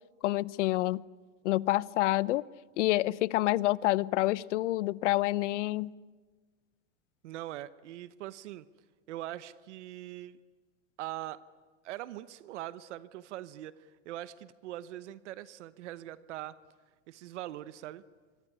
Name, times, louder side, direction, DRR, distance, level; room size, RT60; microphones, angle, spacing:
voice 1, 0.2-1.0 1.4-2.4 2.8-5.9, left 17 dB, 70° left, 21 dB, 0.8 m, -28 dB
voice 2, 7.2-8.7 9.1-10.4 11.0-11.4 11.8-16.6 17.1-18.0, right 14 dB, 65° right, 16 dB, 1.0 m, -42 dB
26.5 x 23.0 x 9.9 m, 1.4 s
supercardioid pair, 170°, 37 cm